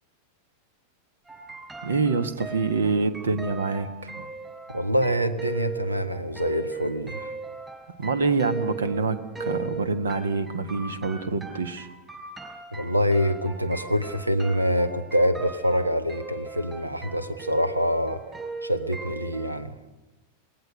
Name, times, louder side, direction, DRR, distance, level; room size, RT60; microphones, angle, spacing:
sound 1, 1.3-19.6, right 4 dB, 10° right, 4.9 m, -38 dB
voice 1, 1.8-4.1 8.0-11.9, right 4 dB, 65° right, 11 dB, 1.6 m, -26 dB
voice 2, 4.7-7.3 12.7-18.2 18.6-19.7, equal, 85° right, 10 dB, 1.4 m, -25 dB
28.0 x 20.0 x 6.6 m, 1.1 s
figure-of-eight pair, 90°, 0 cm